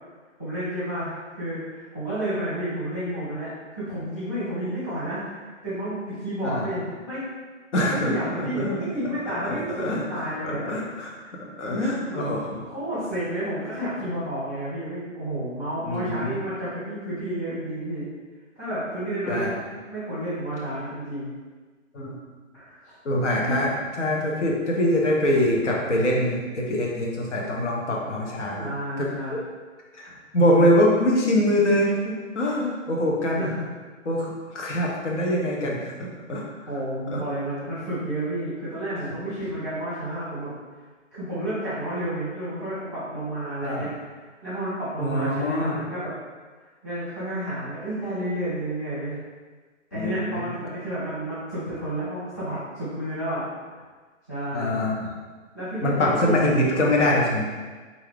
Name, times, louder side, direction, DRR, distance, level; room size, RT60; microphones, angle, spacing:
voice 1, 0.4-7.3 7.9-10.7 11.2-11.3 12.0-12.3 12.6-18.1 18.6-21.3 22.5-22.9 23.4-23.6 28.6-29.3 33.4-33.6 36.7-40.5 41.1-43.9 44.4-46.1 46.8-49.2 49.9-53.4 54.3-54.7 55.5-56.5, right 1 dB, 15° left, -14 dB, 0.6 m, -31 dB
voice 2, 7.7-8.1 8.6-8.8 9.3-10.0 10.4-12.6 15.9-16.4 19.3-19.5 21.9-22.2 23.0-23.7 24.0-28.7 29.0-29.1 30.0-32.0 32.3-33.4 34.1-36.4 37.1-37.2 43.6-43.9 45.0-45.8 49.9-50.4 54.5-55.1 55.8-57.5, left 1 dB, 60° left, -2 dB, 1.0 m, -24 dB
3.7 x 2.8 x 3.3 m, 1.4 s
hypercardioid pair, 165°, 40 cm